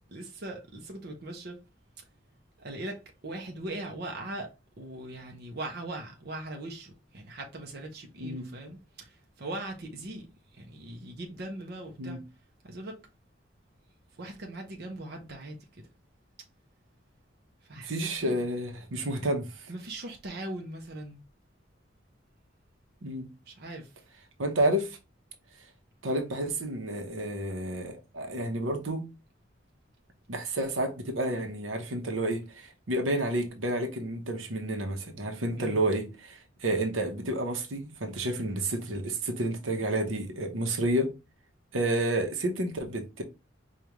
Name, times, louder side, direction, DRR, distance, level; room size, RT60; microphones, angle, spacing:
voice 1, 0.1-1.6 2.0-2.1 2.6-12.2 12.6-13.0 14.1-15.9 17.6-18.4 19.7-21.2 23.5-24.1 35.6-35.8, right 1 dB, 55° right, 0.7 m, -40 dB
voice 2, 17.8-19.7 23.0-23.3 24.4-25.0 26.0-29.1 30.3-41.1 41.7-43.2, right 1 dB, 85° right, 0.9 m, -30 dB
4.9 x 2.4 x 2.9 m
head